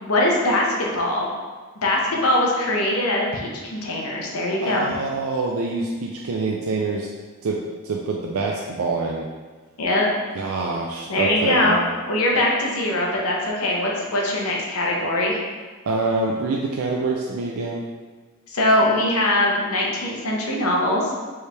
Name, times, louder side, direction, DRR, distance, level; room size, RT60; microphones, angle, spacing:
voice 1, 0.0-1.3 1.8-4.9 9.8-10.1 11.1-11.8 12.1-15.4 18.5-21.1, left 1 dB, 75° left, -2 dB, 0.9 m, -22 dB
voice 2, 4.6-7.1 7.4-9.3 10.4-11.7 15.9-17.8, right 3 dB, 70° right, -2 dB, 0.4 m, -25 dB
4.6 x 3.3 x 3.3 m, 1.4 s
head